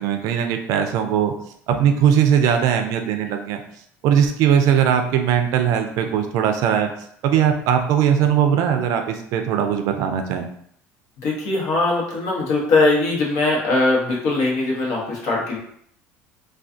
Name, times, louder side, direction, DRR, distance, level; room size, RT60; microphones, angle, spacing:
voice 1, 0.0-1.3 1.7-3.6 4.0-6.9 7.2-10.5, right 8 dB, 70° right, 5 dB, 0.4 m, -19 dB
voice 2, 11.2-15.6, left 2 dB, 70° left, -3 dB, 0.9 m, -20 dB
2.3 x 2.3 x 2.5 m, 0.68 s
supercardioid pair, 90°, 6 cm